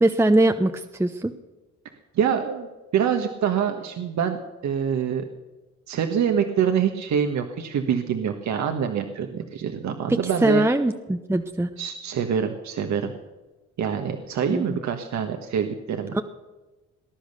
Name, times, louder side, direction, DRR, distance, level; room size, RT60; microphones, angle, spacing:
voice 1, 0.0-1.3 10.1-11.7 14.4-14.8 16.1-16.2, right 2 dB, 10° right, 6 dB, 0.8 m, -22 dB
voice 2, 2.1-2.7 2.9-5.2 5.9-10.6 11.8-13.1 13.8-16.2, right 7 dB, 65° right, 5 dB, 1.4 m, -25 dB
19.5 x 10.5 x 6.7 m, 1.1 s
cardioid pair, 90°, 30 cm